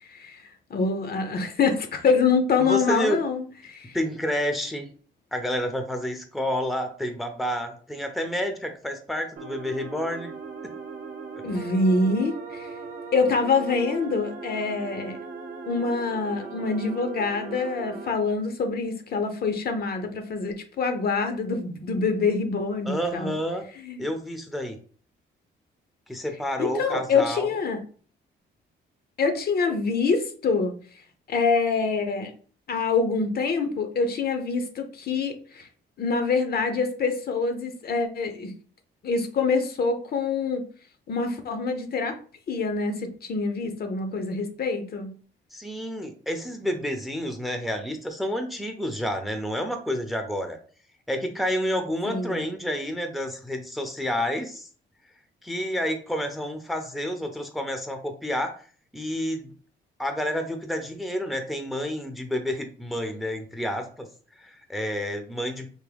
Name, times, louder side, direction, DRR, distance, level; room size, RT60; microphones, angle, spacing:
voice 1, 0.0-4.0 11.4-12.8 13.1-15.2 15.7-23.3 23.8-24.1 26.6-27.8 29.2-30.7 31.3-32.3 32.7-35.7 36.0-38.5 39.0-40.6 41.1-42.2 42.5-45.1 52.0-52.5, left 4 dB, 50° left, 7 dB, 0.7 m, -25 dB
voice 2, 2.6-3.2 3.9-4.9 5.3-10.3 22.8-23.6 24.0-24.8 26.1-27.5 45.5-50.6 51.1-54.7 55.4-58.6 58.9-59.5 60.0-64.1 64.4-65.7, equal, ahead, 5 dB, 0.6 m, -29 dB
sound 1, 9.4-18.1, right 4 dB, 50° right, 0.7 m, -38 dB
3.5 x 2.1 x 3.4 m, 0.42 s
cardioid pair, 90°, 20 cm